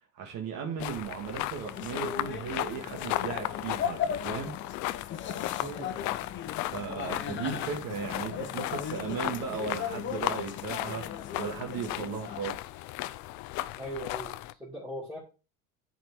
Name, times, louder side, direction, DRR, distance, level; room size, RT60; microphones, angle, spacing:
voice 1, 0.1-4.5 6.7-11.1 11.4-12.6, right 6 dB, 60° right, 1.9 m, -36 dB
sound 1, 0.8-14.5, left 16 dB, 50° left, 0.5 m, -36 dB
sound 2, 1.7-12.5, left 8 dB, 30° left, 1.0 m, -38 dB
voice 2, 5.6-5.9 13.8-15.2, right 1 dB, 10° right, 3.0 m, -40 dB
10.0 x 4.6 x 4.7 m
cardioid pair, 150°, 38 cm